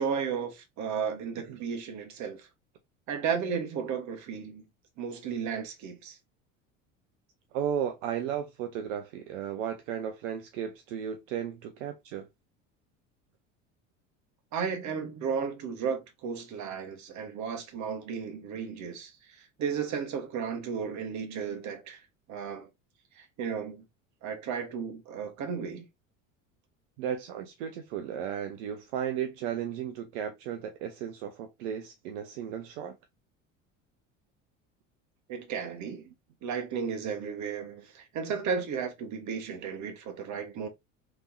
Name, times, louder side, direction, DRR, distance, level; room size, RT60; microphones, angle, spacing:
voice 1, 0.0-2.5 3.1-4.6 5.0-6.2 14.5-22.0 22.3-22.7 23.1-23.8 24.2-25.9 35.3-36.0 36.4-40.7, right 6 dB, 45° right, 1.2 m, -34 dB
voice 2, 7.5-12.3 27.0-32.9, right 9 dB, 70° right, 0.7 m, -34 dB
3.5 x 3.0 x 2.6 m
hypercardioid pair, 70°, 39 cm